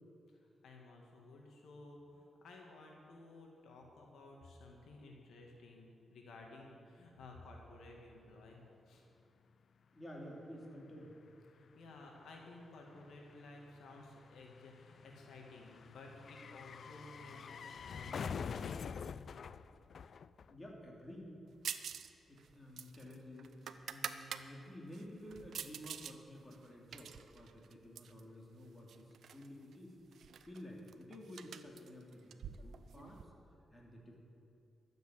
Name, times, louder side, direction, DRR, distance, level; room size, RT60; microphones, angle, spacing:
voice 1, 0.3-8.6 8.9-9.0 11.5-19.0, left 2 dB, 85° left, 0 dB, 2.1 m, -55 dB
voice 2, 9.9-11.2 20.5-21.3 22.3-30.0 30.4-33.3 33.7-34.2, equal, 20° left, -2 dB, 3.0 m, -52 dB
sound 1, 10.2-10.3 10.5-20.9 21.1-21.2, left 6 dB, 60° left, 0.3 m, -47 dB
sound 2, 21.6-22.1 22.4-24.4 24.9-26.1 26.5-28.2 28.9-29.5 29.7-29.8 30.1-33.2, right 8 dB, 75° right, 0.6 m, -46 dB
12.5 x 7.9 x 8.9 m, 2.8 s
cardioid pair, 90°, 0 cm